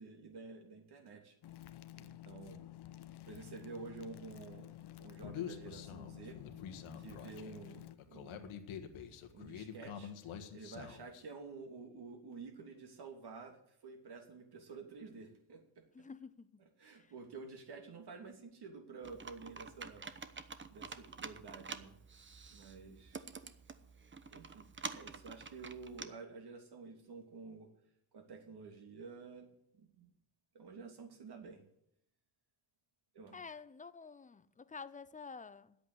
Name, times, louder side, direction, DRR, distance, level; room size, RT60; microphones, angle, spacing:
voice 1, 0.0-1.4 1.9-2.7 3.3-4.7 5.0-6.4 7.0-8.6 9.3-10.1 10.5-15.6 16.8-20.1 20.7-22.0 22.5-23.3 24.3-27.7 28.1-29.5 29.7-30.1 30.5-31.6 33.1-33.5, right 4 dB, 50° right, 3.0 m, -50 dB
sound 1, 1.4-8.0, left 13 dB, 50° left, 0.9 m, -52 dB
Human voice, 5.2-11.2, left 8 dB, 75° left, 1.6 m, -47 dB
voice 2, 15.9-17.1 33.3-35.8, left 5 dB, 15° left, 0.5 m, -50 dB
Computer keyboard, 19.0-26.1, right 5 dB, 25° right, 1.0 m, -48 dB
10.0 x 8.4 x 7.9 m
cardioid pair, 95°, 50 cm